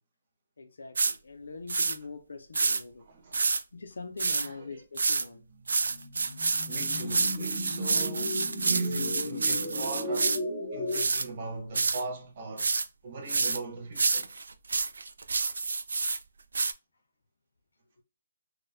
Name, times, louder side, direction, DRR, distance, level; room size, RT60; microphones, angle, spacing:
voice 1, 0.6-3.1 3.7-5.4, left 4 dB, 85° left, 0.4 m, -43 dB
sound 1, 1.0-1.1 1.7-2.0 2.5-2.8 3.3-3.6 4.2-4.5 5.0-5.2 5.7-10.4 10.9-11.3 11.7-12.0 12.6-12.9 13.3-13.6 14.0-16.2 16.5-16.7, right 4 dB, 75° right, 0.3 m, -28 dB
voice 2, 3.0-3.5 4.4-4.8 6.7-10.4 10.7-12.7 13.0-14.3, right 3 dB, 25° right, 0.6 m, -39 dB
sound 2, 5.5-11.0, left 2 dB, 15° left, 0.8 m, -36 dB
4.0 x 2.1 x 2.6 m
hypercardioid pair, 180°, 0 cm